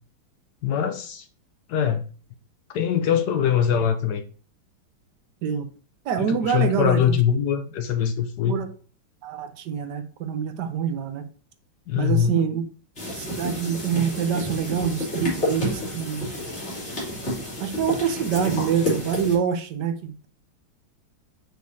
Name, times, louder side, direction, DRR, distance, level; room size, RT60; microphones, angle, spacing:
voice 1, 0.6-1.3 1.7-2.0 2.7-4.2 6.2-8.6 11.9-12.4, left 8 dB, 70° left, 1.0 m, -22 dB
voice 2, 6.0-7.2 8.5-8.7 9.2-11.3 11.9-12.6 13.1-16.3 17.6-20.3, right 7 dB, 65° right, 1.2 m, -26 dB
sound 1, 13.0-19.4, left 1 dB, 30° left, 3.3 m, -30 dB
6.5 x 6.3 x 2.7 m
omnidirectional pair, 2.2 m